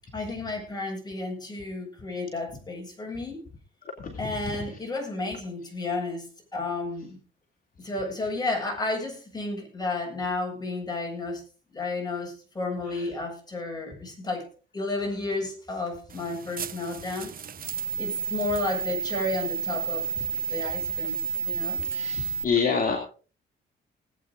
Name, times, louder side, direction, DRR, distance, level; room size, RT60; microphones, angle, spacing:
voice 1, 0.1-3.4 4.2-6.3 6.5-7.2 7.8-11.4 11.7-14.4 14.7-17.3 18.0-20.1 20.5-21.8, left 3 dB, 20° left, 0 dB, 7.9 m, -32 dB
sound 1, 16.1-22.4, right 5 dB, 45° right, 1.0 m, -31 dB
voice 2, 21.9-23.0, left 5 dB, 45° left, 1 dB, 2.9 m, -26 dB
20.0 x 8.9 x 3.9 m, 0.38 s
cardioid pair, 90°, 20 cm